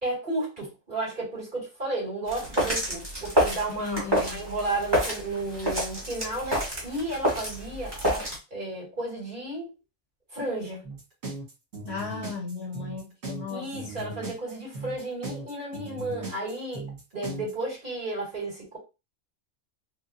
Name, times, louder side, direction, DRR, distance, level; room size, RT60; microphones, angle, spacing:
voice 1, 0.0-8.3 8.5-9.7 10.3-10.9 13.5-16.9 17.1-18.8, right 2 dB, 35° right, 2.4 m, -33 dB
sound 1, 2.3-8.4, equal, 15° right, 1.7 m, -28 dB
voice 2, 3.7-4.4 11.9-13.7, left 4 dB, 55° left, 0.8 m, -35 dB
sound 2, 10.8-17.5, right 2 dB, 65° right, 1.7 m, -38 dB
4.8 x 2.5 x 2.6 m
omnidirectional pair, 1.5 m